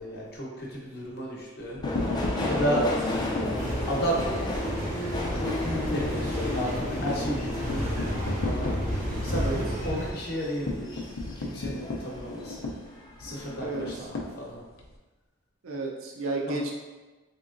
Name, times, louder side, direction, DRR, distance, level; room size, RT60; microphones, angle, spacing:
voice 1, 0.0-1.8 2.5-2.8 3.4-4.2 5.3-8.7 9.2-11.0 11.4-12.7 13.2-14.6 16.5-16.6, equal, 50° left, -3 dB, 0.8 m, -33 dB
sound 1, 1.6-4.8 5.2-5.4 5.7-5.8 6.1-14.9, left 2 dB, 85° left, 0.5 m, -36 dB
Subway metro underground, 1.8-12.5 12.9-13.6 13.9-14.0, left 1 dB, 20° left, 0.3 m, -33 dB
voice 2, 2.4-2.9 9.3-9.6 13.6-14.1 15.6-16.7, right 3 dB, 90° right, -1 dB, 0.6 m, -32 dB
sound 2, 3.6-10.1, equal, 40° right, 0.6 m, -32 dB
3.6 x 2.9 x 2.5 m, 1.2 s
head